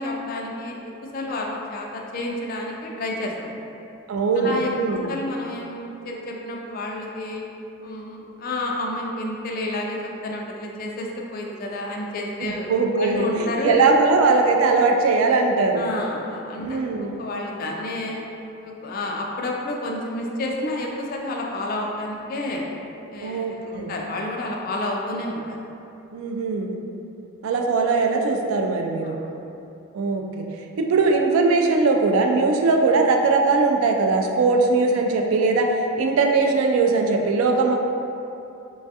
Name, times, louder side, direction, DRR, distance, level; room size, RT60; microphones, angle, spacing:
voice 1, 0.0-3.6 4.4-7.5 7.8-13.8 15.8-18.2 18.6-22.7 23.1-25.6 29.0-29.4, left 1 dB, 45° left, -1 dB, 0.3 m, -30 dB
voice 2, 4.1-5.1 12.4-15.8 16.6-17.2 23.2-23.9 26.1-26.8 27.4-29.2 29.9-37.8, right 3 dB, 80° right, 2 dB, 0.3 m, -20 dB
3.1 x 2.3 x 2.7 m, 2.8 s
head